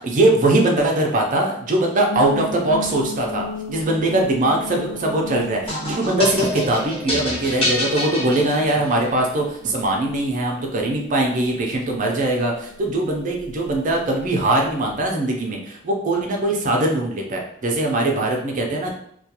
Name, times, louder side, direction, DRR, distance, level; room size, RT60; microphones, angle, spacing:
voice 1, 0.0-18.9, right 2 dB, 35° right, 1 dB, 0.4 m, -21 dB
sound 1, 2.0-15.1, left 4 dB, 60° left, 0.4 m, -37 dB
sound 2, 5.7-9.1, left 1 dB, 25° left, 0.9 m, -26 dB
2.3 x 2.2 x 2.8 m, 0.69 s
head